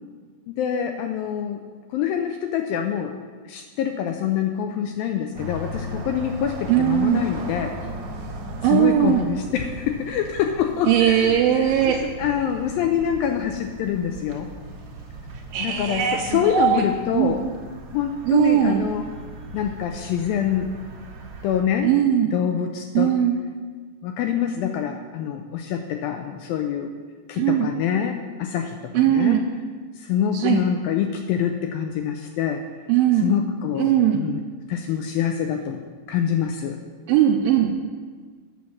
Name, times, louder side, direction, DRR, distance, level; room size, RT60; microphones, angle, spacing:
voice 1, 0.5-1.7 1.9-3.2 3.5-7.7 8.6-14.5 15.6-17.4 17.9-19.0 19.5-20.7 21.4-21.9 22.3-23.1 24.0-26.9 27.3-29.4 30.0-32.6 33.2-34.4 34.7-35.8 36.1-36.8, left 9 dB, 85° left, 5 dB, 2.1 m, -25 dB
sound 1, 5.3-21.6, right 1 dB, 65° right, 1.8 m, -38 dB
voice 2, 6.7-7.2 8.6-9.3 10.9-12.0 15.5-16.8 17.1-17.4 18.3-18.8 21.8-22.3 23.0-23.4 27.4-27.7 28.9-29.4 30.3-30.6 32.9-33.3 33.7-34.2 37.1-37.8, right 10 dB, 85° right, 0 dB, 2.1 m, -19 dB
9.3 x 6.3 x 7.2 m, 1.5 s
omnidirectional pair, 4.7 m